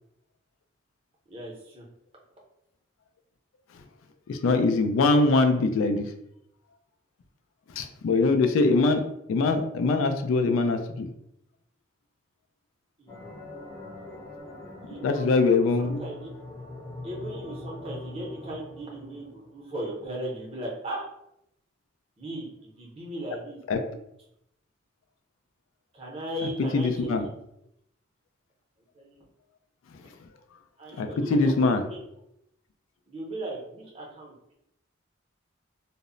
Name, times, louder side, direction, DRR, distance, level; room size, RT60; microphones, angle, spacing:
voice 1, 1.3-1.8 13.0-13.2 14.9-16.3 17.0-21.1 22.2-23.6 25.9-27.3 29.0-29.2 30.8-32.0 33.1-34.3, right 1 dB, 30° right, -3 dB, 0.6 m, -37 dB
voice 2, 4.3-6.1 7.8-9.0 9.3-11.1 15.0-16.0 23.7-23.8 26.7-27.3 31.0-31.8, left 3 dB, 85° left, 7 dB, 0.3 m, -22 dB
sound 1, 13.1-19.8, left 2 dB, 20° left, 0.5 m, -42 dB
2.0 x 2.0 x 3.6 m, 0.78 s
head